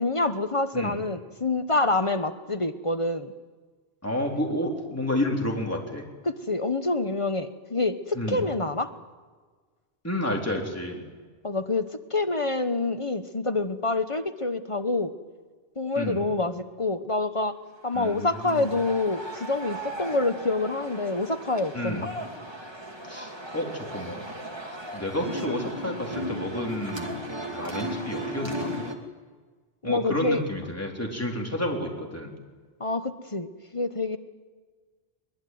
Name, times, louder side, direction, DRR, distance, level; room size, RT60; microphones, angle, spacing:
voice 1, 0.0-3.3 6.2-8.9 11.4-15.1 15.8-17.6 17.8-22.1 29.8-30.4 32.8-34.2, left 2 dB, 30° left, 10 dB, 1.0 m, -27 dB
voice 2, 4.0-6.0 8.1-8.5 10.0-11.0 16.0-16.2 17.9-18.7 21.7-22.1 23.1-24.2 24.9-27.2 27.5-28.7 29.8-32.3, left 1 dB, 15° left, 0 dB, 4.0 m, -30 dB
sound 1, 17.9-29.0, equal, 25° right, 2.4 m, -36 dB
23.0 x 21.5 x 9.4 m, 1.4 s
omnidirectional pair, 1.1 m